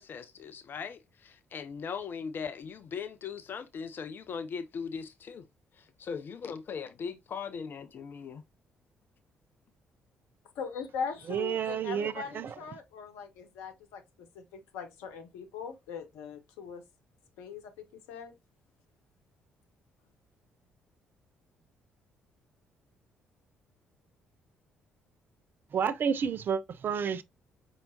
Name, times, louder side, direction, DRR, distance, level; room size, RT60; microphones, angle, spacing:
voice 1, 0.0-5.4 5.7-8.4, left 6 dB, 45° left, 0.4 m, -39 dB
voice 2, 10.5-16.8 17.4-18.3, left 6 dB, 65° left, 0.9 m, -40 dB
voice 3, 11.3-12.5 25.7-27.2, right 7 dB, 45° right, 0.5 m, -30 dB
5.3 x 2.8 x 2.7 m
figure-of-eight pair, 45°, 5 cm